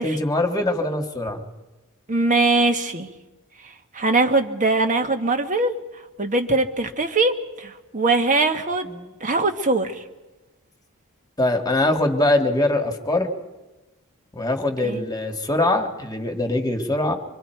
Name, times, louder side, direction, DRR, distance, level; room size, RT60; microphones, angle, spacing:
voice 1, 0.0-1.4 8.8-9.1 11.4-13.3 14.3-17.2, left 2 dB, 15° left, 4 dB, 1.7 m, -22 dB
voice 2, 2.1-3.1 3.9-5.7 6.2-8.9 9.2-10.0 14.8-15.0, right 3 dB, 35° right, 6 dB, 1.3 m, -21 dB
26.0 x 23.5 x 4.5 m, 1.1 s
head